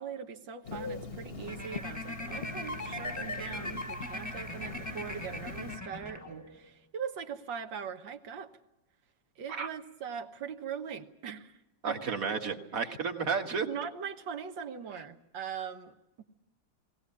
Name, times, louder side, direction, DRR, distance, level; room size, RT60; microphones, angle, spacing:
voice 1, 0.0-8.5 9.4-11.6 11.9-12.2 12.8-13.0 13.6-16.2, right 7 dB, 80° right, 5 dB, 2.0 m, -41 dB
Telephone, 0.6-5.8, left 3 dB, 40° left, 1.0 m, -42 dB
sound 1, 1.4-6.7, left 1 dB, 10° left, 0.9 m, -40 dB
voice 2, 11.8-13.7, right 5 dB, 50° right, 4 dB, 1.9 m, -32 dB
21.0 x 17.5 x 9.7 m, 0.96 s
omnidirectional pair, 2.0 m